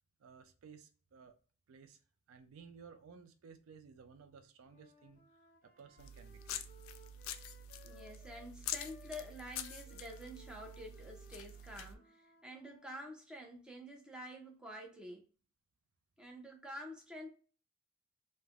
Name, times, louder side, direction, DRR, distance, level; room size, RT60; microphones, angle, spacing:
voice 1, 0.2-1.4 1.7-2.0 2.3-5.2 5.6-6.7, right 5 dB, 85° right, 0.4 m, -57 dB
Wind instrument woodwind instrument, 4.6-8.5 8.8-13.1, left 1 dB, 40° left, 0.6 m, -63 dB
sound 1, 6.0-12.0, left 7 dB, 80° left, 0.3 m, -46 dB
voice 2, 7.8-15.3 16.2-17.3, equal, 5° right, 0.5 m, -49 dB
3.2 x 2.1 x 2.4 m
head